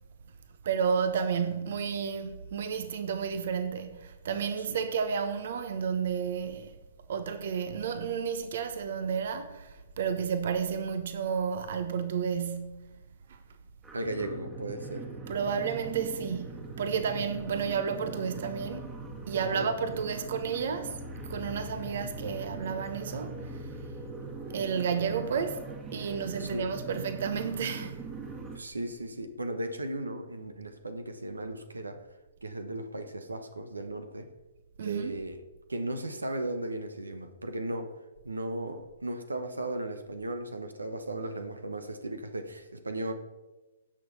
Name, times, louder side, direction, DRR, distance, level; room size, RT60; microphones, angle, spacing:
voice 1, 0.6-6.7 7.1-12.9 13.3-13.4 15.3-18.9 19.3-21.0 21.2-23.4 24.5-25.6 25.9-28.1 34.8-35.2, right 6 dB, 60° right, 1.0 m, -31 dB
sound 1, 13.8-28.6, right 2 dB, 15° right, 1.6 m, -41 dB
voice 2, 13.9-15.1 19.4-19.7 26.4-26.7 28.5-32.1 32.4-34.3 34.8-35.4 35.7-38.0 38.2-43.1, right 1 dB, 90° right, 1.2 m, -36 dB
16.5 x 6.2 x 4.2 m
figure-of-eight pair, 125°, 0 cm